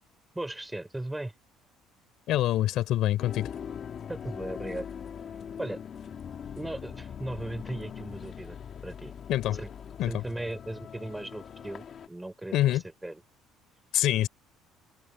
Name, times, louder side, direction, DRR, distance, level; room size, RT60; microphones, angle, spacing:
voice 1, 0.3-1.3 4.1-4.9 5.6-5.8 6.5-8.6 8.8-9.1 9.6-9.7 10.1-13.2, right 1 dB, 5° right, 5.1 m, -37 dB
voice 2, 2.3-3.5 9.3-9.6 10.0-10.1 12.5-12.8 13.9-14.3, left 14 dB, 60° left, 3.5 m, -25 dB
sound 1, 3.2-12.1, left 8 dB, 35° left, 2.0 m, -41 dB
cardioid pair, 150°, 0 cm